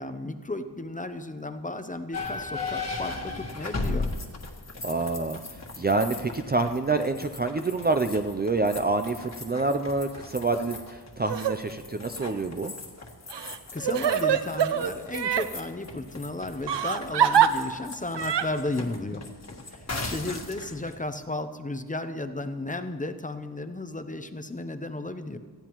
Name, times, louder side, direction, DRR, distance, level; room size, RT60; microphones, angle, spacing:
voice 1, 0.0-4.1 13.7-19.2 19.7-25.4, left 2 dB, 20° left, 9 dB, 0.6 m, -34 dB
sound 1, 2.1-20.9, left 3 dB, 40° left, 1.5 m, -38 dB
voice 2, 4.8-5.4 5.8-12.7 20.0-20.1, right 3 dB, 25° right, 7 dB, 0.4 m, -27 dB
Crying sobbing, 11.2-11.5 12.2-12.3 13.3-15.5 16.7-17.5 18.1-18.4, right 9 dB, 80° right, 0.7 m, -24 dB
18.5 x 14.0 x 3.0 m, 1.5 s
wide cardioid pair, 145°, 41 cm